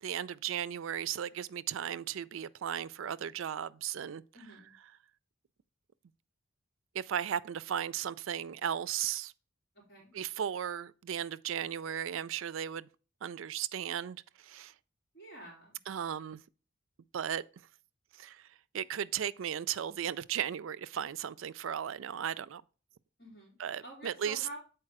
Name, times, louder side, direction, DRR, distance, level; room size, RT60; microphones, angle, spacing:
voice 1, 0.0-4.2 6.9-9.3 10.1-12.9 13.2-14.7 15.9-16.4 17.1-17.4 18.2-18.5 18.7-22.6 23.6-24.5, right 9 dB, 70° right, 0.4 m, -36 dB
voice 2, 4.3-4.7 9.9-10.1 15.1-15.8 23.2-23.6 23.8-24.6, right 1 dB, 50° left, 3.5 m, -48 dB
7.6 x 4.6 x 4.7 m
head